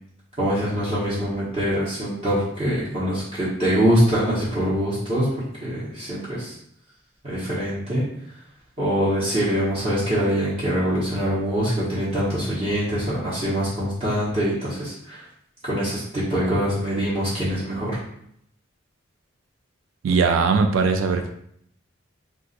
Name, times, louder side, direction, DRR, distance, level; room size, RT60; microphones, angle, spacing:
voice 1, 0.4-6.5 7.2-8.0 8.8-15.2 15.6-18.0, equal, 30° right, -10 dB, 0.9 m, -24 dB
voice 2, 20.0-21.4, right 4 dB, 85° right, 6 dB, 0.3 m, -20 dB
2.4 x 2.4 x 3.9 m, 0.70 s
head